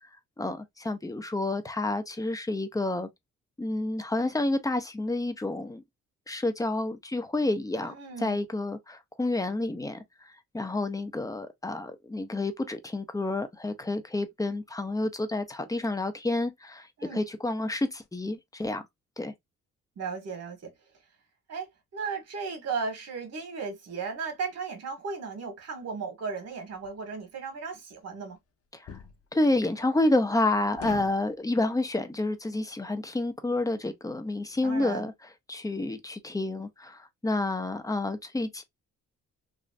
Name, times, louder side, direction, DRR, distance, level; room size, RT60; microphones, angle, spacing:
voice 1, 0.4-3.1 3.6-5.8 6.3-10.0 10.5-16.9 17.1-18.8 19.2-19.3 28.9-29.0 29.3-35.1 35.5-38.6, left 2 dB, 10° left, 0.6 m, -29 dB
voice 2, 7.7-8.4 17.0-17.2 20.0-20.7 21.5-28.4 34.6-35.1, right 5 dB, 55° right, 1.4 m, -36 dB
sound 1, 26.7-26.9 28.9-29.2 30.8-31.2, left 8 dB, 50° left, 0.8 m, -40 dB
3.1 x 2.5 x 2.4 m
cardioid pair, 90°, 30 cm